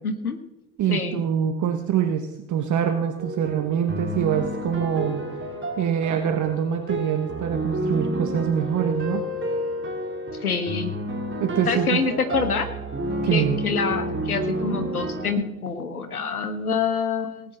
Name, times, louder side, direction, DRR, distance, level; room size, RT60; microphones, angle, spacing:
voice 1, 0.0-0.4 0.9-1.2 10.4-10.9 11.6-12.7 13.3-17.6, left 5 dB, 90° left, 9 dB, 1.3 m, -26 dB
voice 2, 0.8-5.2 5.8-9.2 11.4-12.0 13.2-13.6, right 9 dB, 45° right, 7 dB, 1.3 m, -24 dB
sound 1, 3.2-15.3, right 1 dB, 25° right, 3.6 m, -30 dB
19.0 x 9.6 x 4.0 m, 0.93 s
figure-of-eight pair, 60°, 43 cm